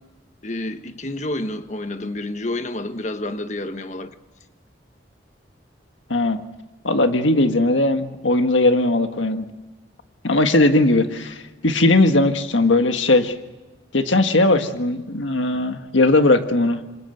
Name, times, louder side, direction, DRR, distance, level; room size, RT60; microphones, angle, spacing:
voice 1, 0.4-4.1, left 1 dB, 40° left, 1.4 m, -29 dB
voice 2, 6.8-9.4 10.2-11.4 11.6-13.3 13.9-16.8, left 2 dB, 90° left, 1.7 m, -18 dB
27.0 x 26.0 x 8.0 m
head